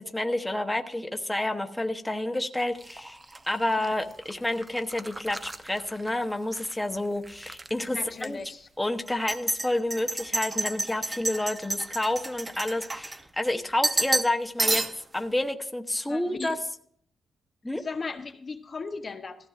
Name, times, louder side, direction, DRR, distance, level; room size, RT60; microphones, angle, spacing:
voice 1, 0.0-3.2 3.5-8.4 8.8-14.8 15.1-16.6 17.6-17.8, left 1 dB, 10° left, 5 dB, 0.8 m, -29 dB
sound 1, 2.8-6.7 7.0-7.7 8.2-8.3 9.1-13.5 13.8-14.3 14.6-15.2, right 2 dB, 20° right, 0.6 m, -31 dB
voice 2, 7.9-8.7 16.0-16.6 17.7-19.5, left 4 dB, 35° left, 6 dB, 0.7 m, -37 dB
17.0 x 14.5 x 2.4 m, 0.66 s
cardioid pair, 120°, 0 cm